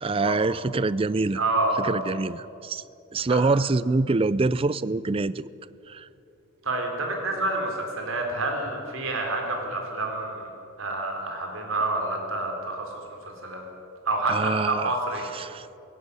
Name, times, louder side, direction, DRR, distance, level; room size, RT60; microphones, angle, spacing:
voice 1, 0.0-1.4 1.8-2.8 3.1-5.5 5.9-6.1 14.3-15.0 15.3-15.7, right 3 dB, 25° right, 18 dB, 0.4 m, -25 dB
voice 2, 1.3-2.2 3.3-3.4 6.6-10.5 10.8-13.6 14.0-15.3, right 2 dB, 70° right, 2 dB, 4.0 m, -28 dB
17.0 x 16.0 x 9.6 m, 2.7 s
head